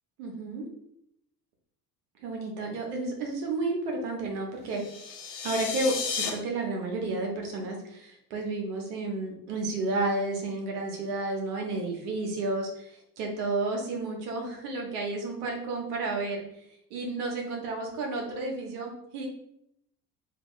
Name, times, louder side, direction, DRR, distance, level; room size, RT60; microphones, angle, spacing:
voice 1, 0.2-0.6 2.2-4.8 5.4-16.4 16.9-19.3, right 2 dB, 70° right, 1 dB, 1.2 m, -31 dB
sound 1, 4.7-6.3, left 6 dB, 70° left, 1.0 m, -33 dB
2.9 x 2.7 x 3.8 m, 0.75 s
figure-of-eight pair, 60°, 47 cm